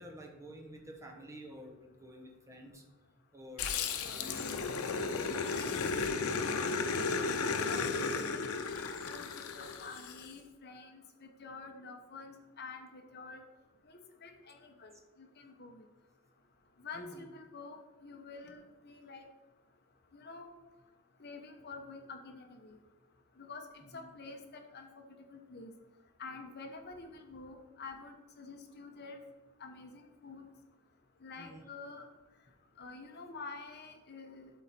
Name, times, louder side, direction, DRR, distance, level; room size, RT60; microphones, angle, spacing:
voice 1, 0.0-2.8 3.3-5.3 5.6-6.4 14.9-15.0 16.9-17.2 23.8-24.1 31.4-31.6, equal, 15° right, 2 dB, 1.1 m, -50 dB
Growling, 3.6-10.3, left 4 dB, 90° left, 0.7 m, -34 dB
voice 2, 7.4-13.4 13.8-14.9 15.2-15.8 16.8-19.3 20.1-20.5 21.2-22.8 23.4-23.6 23.9-24.9 25.3-25.7 26.2-29.2 29.6-30.4 31.2-32.1 32.8-34.5, left 4 dB, 50° left, 4 dB, 0.9 m, -48 dB
12.0 x 4.0 x 4.2 m, 1.2 s
head